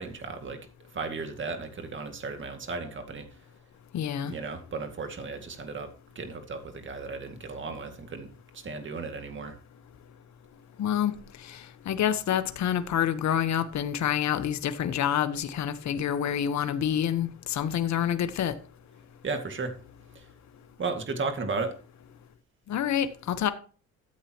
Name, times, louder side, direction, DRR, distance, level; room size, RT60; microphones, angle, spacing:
voice 1, 0.0-3.4 4.2-8.3 8.5-9.6 19.2-19.8 20.1-20.3 20.8-21.7, right 4 dB, 40° right, 2.3 m, -35 dB
voice 2, 3.9-4.3 10.8-11.1 11.4-18.5 22.7-23.5, left 9 dB, 65° left, 1.2 m, -27 dB
14.0 x 8.3 x 3.0 m
cardioid pair, 90°, 30 cm